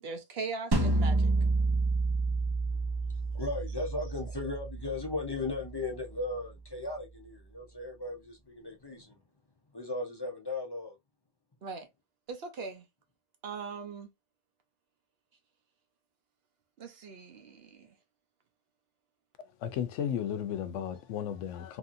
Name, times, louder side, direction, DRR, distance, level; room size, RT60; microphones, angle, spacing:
voice 1, 0.0-1.3 11.6-11.9 12.3-12.8 13.4-14.1 16.8-17.9, right 4 dB, 60° right, 0.9 m, -40 dB
sound 1, 0.7-5.8, right 3 dB, 35° right, 0.4 m, -29 dB
voice 2, 3.3-9.1 9.7-11.0, left 2 dB, 30° left, 0.5 m, -36 dB
voice 3, 19.6-21.8, left 9 dB, 85° left, 0.9 m, -34 dB
3.0 x 2.7 x 2.5 m
omnidirectional pair, 1.2 m